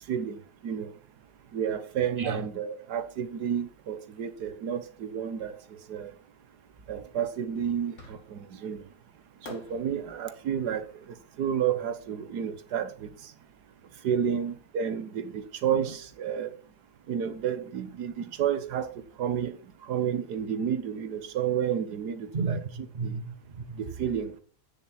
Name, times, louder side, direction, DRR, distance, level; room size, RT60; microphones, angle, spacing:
voice 1, 0.1-0.4 0.6-0.9 1.5-5.5 5.9-6.1 6.9-8.8 9.5-10.8 11.4-13.1 14.0-16.5 17.1-18.9 19.2-19.6 19.8-22.6 23.0-23.2 23.8-24.4, right 8 dB, 85° right, 1.7 m, -30 dB
voice 2, 2.2-2.5 14.2-14.4 15.9-16.0 22.3-23.9, right 4 dB, 40° right, 1.1 m, -34 dB
Fireworks, 8.0-8.6 9.4-12.6, left 2 dB, 50° left, 2.6 m, -50 dB
9.1 x 7.4 x 5.8 m
omnidirectional pair, 1.7 m